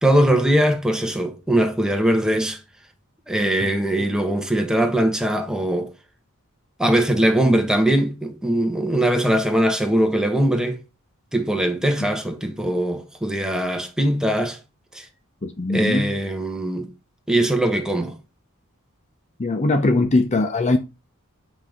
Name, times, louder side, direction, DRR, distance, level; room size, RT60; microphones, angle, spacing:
voice 1, 0.0-2.6 3.3-5.9 6.8-10.8 11.3-14.6 14.9-15.0 15.7-16.9 17.3-18.1, right 1 dB, 5° right, 1.2 m, -21 dB
voice 2, 15.4-16.1 19.4-20.8, left 2 dB, 30° left, 0.6 m, -20 dB
8.5 x 5.3 x 3.5 m
head